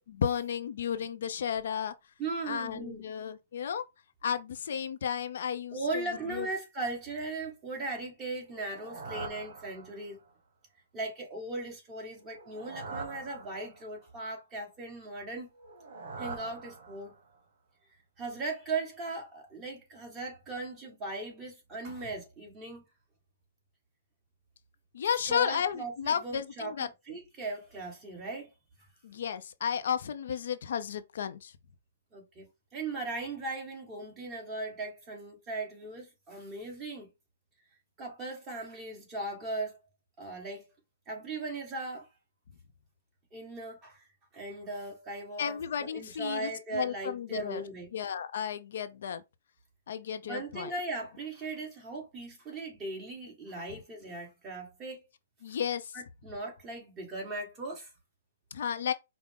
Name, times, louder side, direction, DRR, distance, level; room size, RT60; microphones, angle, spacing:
voice 1, 0.0-1.9 2.5-3.8 4.2-5.8 6.3-6.5 24.9-26.9 29.0-31.5 45.4-47.6 47.9-49.2 49.9-50.7 55.4-55.9 58.5-58.9, left 8 dB, 60° left, 0.5 m, -33 dB
voice 2, 2.2-3.0 5.7-10.2 10.9-15.5 16.2-17.1 18.2-22.8 25.2-28.5 32.1-37.1 38.0-39.8 40.2-40.6 41.1-42.1 43.3-44.1 44.3-47.9 50.2-55.0 55.9-57.9, right 2 dB, 15° right, 1.4 m, -38 dB
sound 1, 8.4-10.3 12.2-14.1 15.5-17.4, right 4 dB, 55° right, 1.2 m, -44 dB
4.8 x 2.0 x 3.6 m
hypercardioid pair, 165°, 0 cm